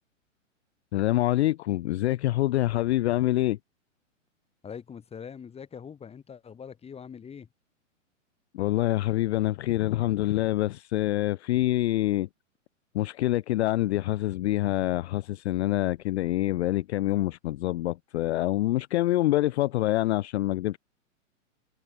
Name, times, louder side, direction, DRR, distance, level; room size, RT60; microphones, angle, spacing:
voice 1, 0.9-3.6 8.5-12.3 12.9-20.8, left 15 dB, 60° left, 0.5 m, -26 dB
voice 2, 4.6-7.5, left 7 dB, 15° left, 5.4 m, -43 dB
hypercardioid pair, 130°, 39 cm